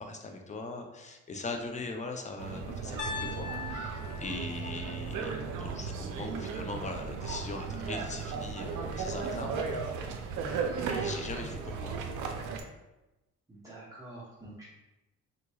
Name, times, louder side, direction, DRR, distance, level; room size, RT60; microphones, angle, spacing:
voice 1, 0.0-3.9 4.2-9.8 10.9-11.9, left 3 dB, 25° left, 3 dB, 0.5 m, -40 dB
sound 1, 2.4-12.6, right 5 dB, 90° right, 0.5 m, -36 dB
Piano, 3.0-7.0, left 5 dB, 80° left, 0.6 m, -43 dB
voice 2, 10.4-10.7 13.5-14.6, right 2 dB, 10° right, -8 dB, 0.8 m, -46 dB
3.8 x 3.0 x 2.3 m, 1.0 s
cardioid pair, 90°, 30 cm